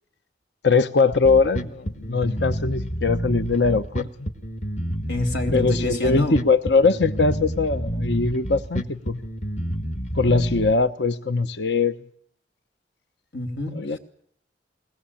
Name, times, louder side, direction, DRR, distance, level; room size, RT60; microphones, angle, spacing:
voice 1, 0.6-4.1 5.5-9.2 10.1-12.0 13.7-14.0, left 4 dB, 70° left, 11 dB, 0.9 m, -21 dB
Bass guitar, 1.1-10.7, equal, 40° left, 1.4 m, -29 dB
voice 2, 5.1-6.4 13.3-14.0, left 2 dB, 90° left, 4 dB, 3.9 m, -27 dB
21.5 x 18.5 x 8.6 m, 0.62 s
head